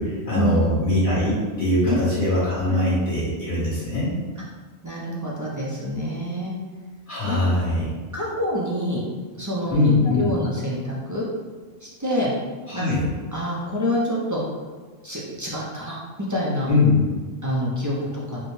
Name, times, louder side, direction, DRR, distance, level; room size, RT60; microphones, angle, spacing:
voice 1, 0.0-4.1 7.1-7.9 9.7-10.3 12.7-13.1 16.7-17.0, left 2 dB, 45° left, -10 dB, 1.4 m, -21 dB
voice 2, 4.8-6.5 7.2-7.4 8.1-9.0 9.4-11.2 11.8-12.3 12.7-12.9 13.3-14.4 15.0-16.7 17.4-18.4, equal, 25° right, -6 dB, 0.4 m, -27 dB
4.9 x 2.2 x 3.2 m, 1.4 s
omnidirectional pair, 1.2 m